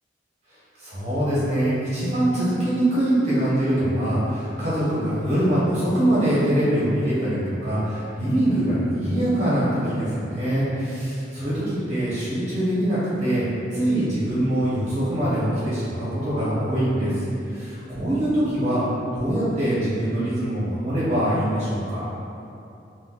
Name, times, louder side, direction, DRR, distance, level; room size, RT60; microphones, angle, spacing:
voice 1, 0.8-13.4 13.7-17.1 17.5-18.8 19.1-22.1, right 1 dB, 40° right, -11 dB, 0.8 m, -23 dB
3.8 x 2.1 x 2.3 m, 2.7 s
head